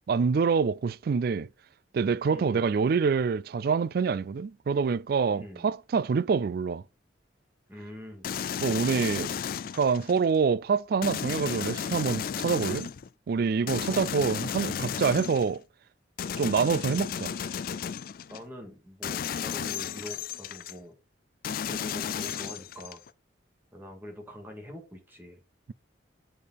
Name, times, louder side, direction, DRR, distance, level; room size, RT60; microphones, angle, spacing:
voice 1, 0.1-1.5 1.9-6.8 8.6-9.3 9.7-12.9 13.3-15.6 16.4-17.3, right 5 dB, 55° right, 0.3 m, -26 dB
voice 2, 2.3-2.7 5.3-5.7 7.7-8.3 13.8-14.1 18.3-20.9 21.5-23.0 23.7-25.4, left 1 dB, 10° right, 2.1 m, -44 dB
sound 1, 8.2-10.2 11.0-13.1 13.7-15.6 16.2-18.4 19.0-20.7 21.4-23.1, left 8 dB, 50° left, 0.3 m, -34 dB
6.7 x 5.2 x 4.1 m
head